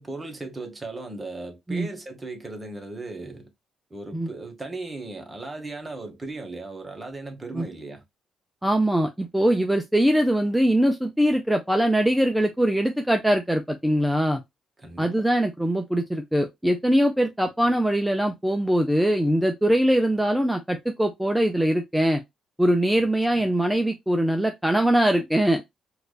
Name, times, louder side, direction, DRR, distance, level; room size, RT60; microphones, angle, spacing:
voice 1, 0.0-3.5 3.9-8.0 14.8-15.1 23.0-23.1 23.3-23.5, right 2 dB, 25° right, 1.1 m, -37 dB
voice 2, 8.6-14.4 15.0-22.2 22.6-25.6, right 1 dB, 5° right, 0.5 m, -22 dB
4.6 x 2.4 x 2.3 m
cardioid pair, 90°, 0 cm